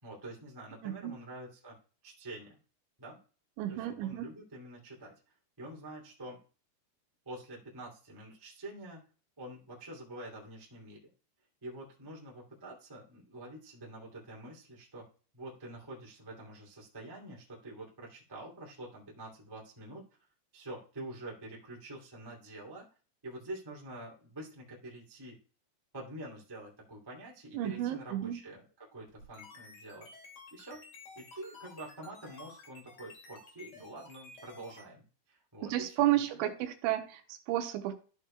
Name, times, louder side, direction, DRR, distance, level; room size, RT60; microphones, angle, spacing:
voice 1, 0.0-1.7 2.0-2.6 3.0-3.2 3.7-6.4 7.2-9.0 9.4-11.1 11.6-15.0 15.3-20.0 20.5-22.8 23.2-25.4 25.9-28.6 28.9-30.1 30.5-30.8 31.1-36.5, right 1 dB, 15° right, -4 dB, 0.9 m, -47 dB
voice 2, 0.8-1.2 3.6-4.3 27.5-28.4 35.6-37.9, right 13 dB, 80° right, 6 dB, 3.1 m, -32 dB
sound 1, 29.1-34.8, left 3 dB, 45° left, 2.7 m, -52 dB
14.0 x 6.4 x 2.2 m, 0.38 s
omnidirectional pair, 5.6 m